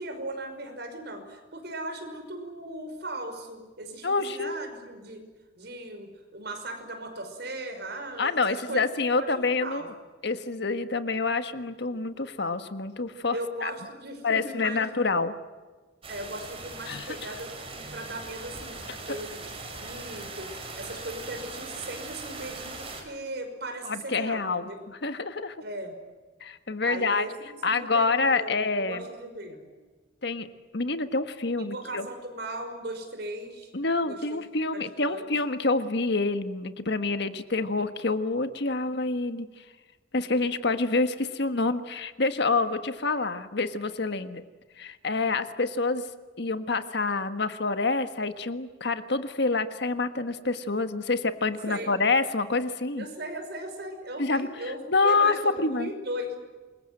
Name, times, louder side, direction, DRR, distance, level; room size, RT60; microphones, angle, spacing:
voice 1, 0.0-5.2 5.6-8.8 9.2-9.9 13.3-14.9 16.1-19.5 19.8-24.8 25.6-26.0 26.8-29.7 31.6-33.7 34.0-34.4 34.7-35.3 51.7-51.9 53.0-56.4, right 1 dB, 60° right, 6 dB, 5.7 m, -38 dB
voice 2, 4.0-4.5 8.2-9.9 10.2-13.4 13.6-13.7 14.2-15.3 16.9-17.1 23.8-25.5 26.4-27.3 27.6-29.0 30.2-30.5 30.7-32.1 33.7-39.5 40.1-44.4 44.8-46.1 46.4-53.0 54.2-54.5 54.9-55.9, left 3 dB, 60° left, 10 dB, 1.5 m, -27 dB
sound 1, 16.0-23.0, right 3 dB, 30° right, 5.1 m, -40 dB
28.0 x 22.5 x 7.9 m, 1.3 s
head